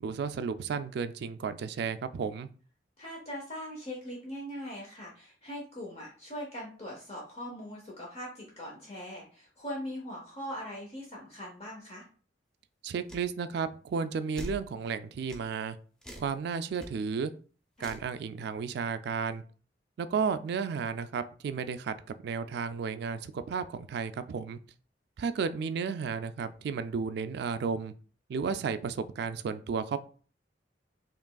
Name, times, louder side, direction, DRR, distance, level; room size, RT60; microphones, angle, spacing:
voice 1, 0.0-2.5 12.8-15.8 16.2-17.3 17.8-19.4 20.0-22.0 22.2-24.6 25.2-27.9 28.3-30.0, right 5 dB, 65° right, 12 dB, 0.3 m, -33 dB
voice 2, 3.0-12.0 17.8-17.9, equal, 35° left, -3 dB, 0.8 m, -41 dB
sound 1, 13.1-13.3 14.4-14.6 15.3-15.5 16.0-16.3 16.7-16.9 17.8-18.1, equal, 5° left, 0.6 m, -42 dB
5.0 x 3.0 x 2.3 m, 0.41 s
head